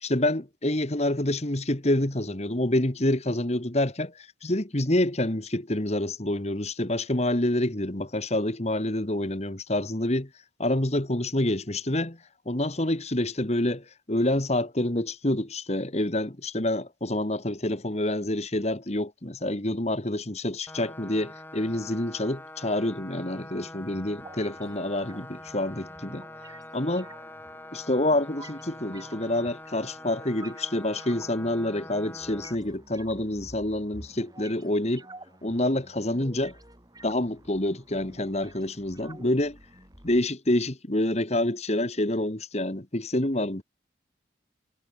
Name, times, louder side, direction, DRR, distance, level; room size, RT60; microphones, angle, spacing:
voice 1, 0.0-10.3 10.6-12.2 12.5-26.3 26.7-27.1 27.7-35.1 35.4-36.6 37.0-39.6 40.0-43.6, left 1 dB, 35° left, 1.9 m, -27 dB
sound 1, 20.7-32.6, left 1 dB, 10° left, 5.6 m, -44 dB
sound 2, 24.2-40.2, right 2 dB, 20° right, 6.0 m, -50 dB
head